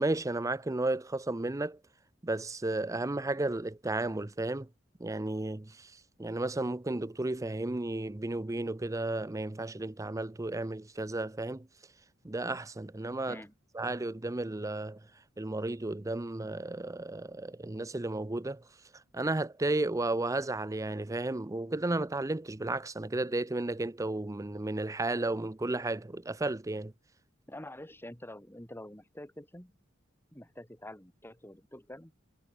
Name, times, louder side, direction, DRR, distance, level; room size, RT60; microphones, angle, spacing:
voice 1, 0.0-1.8 2.2-4.7 5.0-5.9 6.2-11.7 12.2-13.4 13.7-15.0 15.4-18.6 19.1-26.9, right 2 dB, 15° right, 0.6 m, -33 dB
voice 2, 27.5-29.7 30.3-32.1, left 1 dB, 10° left, 4.2 m, -47 dB
head